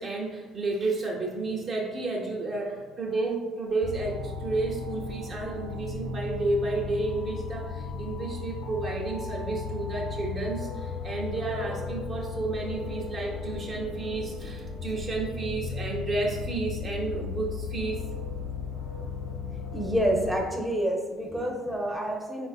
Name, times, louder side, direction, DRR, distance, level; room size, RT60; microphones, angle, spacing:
voice 1, 0.0-18.0, right 3 dB, 45° right, -2 dB, 0.6 m, -31 dB
sound 1, 3.8-20.4, left 5 dB, 70° left, 0.6 m, -36 dB
voice 2, 19.7-22.5, equal, 5° right, 0 dB, 0.5 m, -28 dB
3.4 x 2.4 x 2.3 m, 1.2 s
supercardioid pair, 65°, 0 cm